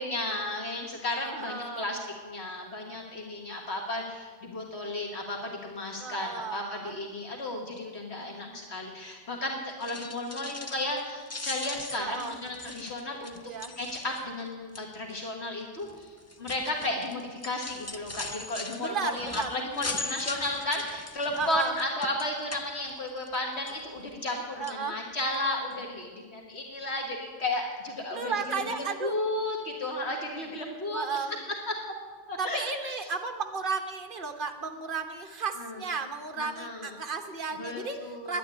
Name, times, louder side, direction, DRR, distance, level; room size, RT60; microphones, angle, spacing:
voice 1, 0.0-2.0 2.2-13.4 13.8-31.0 32.3-32.9 35.6-35.8 36.4-36.9 37.6-38.4, left 2 dB, 70° left, 0 dB, 1.9 m, -34 dB
voice 2, 1.2-1.9 6.0-6.9 8.1-8.6 12.0-12.4 13.4-13.7 18.8-19.6 21.3-21.8 24.6-25.0 28.1-29.2 30.9-31.3 32.4-38.4, right 5 dB, 50° right, 5 dB, 1.4 m, -34 dB
sound 1, 9.7-11.0 11.3-14.4 14.7-15.1 15.8-23.4 23.7-24.4 24.6-24.8 25.3-25.4 25.7-25.8, left 3 dB, 20° left, 0.4 m, -40 dB
10.5 x 9.5 x 9.9 m, 1.4 s
omnidirectional pair, 1.2 m